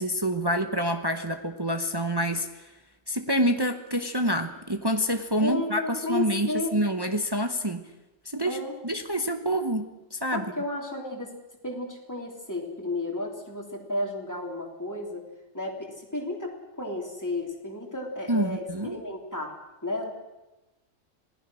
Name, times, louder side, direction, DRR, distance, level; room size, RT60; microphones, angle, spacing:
voice 1, 0.0-2.7 3.1-7.9 8.2-10.5 18.3-19.0, equal, 20° right, 7 dB, 0.9 m, -27 dB
voice 2, 5.4-6.7 8.4-8.7 10.3-11.3 11.6-15.3 15.5-19.5 19.8-20.1, left 2 dB, 15° left, 0 dB, 3.3 m, -33 dB
26.5 x 18.0 x 6.3 m, 1.0 s
omnidirectional pair, 1.4 m